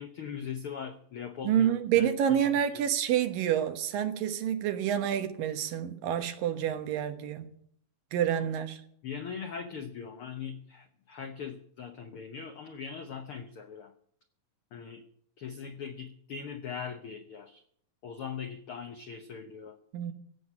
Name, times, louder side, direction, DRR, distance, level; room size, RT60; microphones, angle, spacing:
voice 1, 0.0-1.7 2.0-2.4 2.7-2.9 8.3-8.4 9.0-13.9 14.7-15.0 15.4-17.6 18.0-19.8, left 7 dB, 80° left, 1.2 m, -40 dB
voice 2, 1.4-7.5 8.1-8.8 19.9-20.1, right 9 dB, 80° right, 2.9 m, -28 dB
16.5 x 7.6 x 8.7 m
omnidirectional pair, 4.0 m